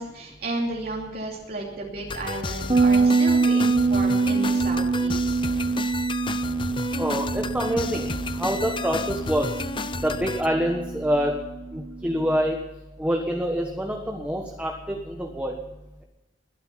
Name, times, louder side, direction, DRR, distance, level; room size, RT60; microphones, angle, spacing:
voice 1, 0.0-5.7, right 2 dB, 55° right, -2 dB, 2.8 m, -33 dB
sound 1, 2.1-10.5, left 3 dB, 25° left, 0.7 m, -32 dB
Bass guitar, 2.7-12.1, right 4 dB, 30° right, 1.6 m, -25 dB
voice 2, 7.0-8.1 8.3-9.6 10.0-11.4 11.7-12.6 13.0-15.6, equal, 10° right, 2 dB, 1.3 m, -26 dB
21.5 x 10.5 x 5.8 m, 1.0 s
head